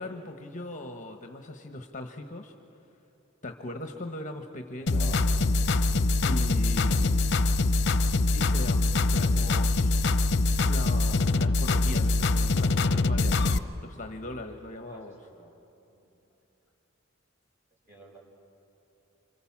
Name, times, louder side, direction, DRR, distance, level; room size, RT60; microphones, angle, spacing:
voice 1, 0.0-2.5 3.4-5.2 5.9-7.1 8.3-10.0 10.6-13.4 13.8-15.2, left 2 dB, 40° left, 5 dB, 1.2 m, -39 dB
voice 2, 4.8-5.2 14.9-15.5 15.9-16.1 17.9-18.2, right 3 dB, 15° right, -2 dB, 6.0 m, -49 dB
sound 1, 4.9-13.6, left 3 dB, 60° left, 0.8 m, -24 dB
28.0 x 26.0 x 7.4 m, 2.9 s
head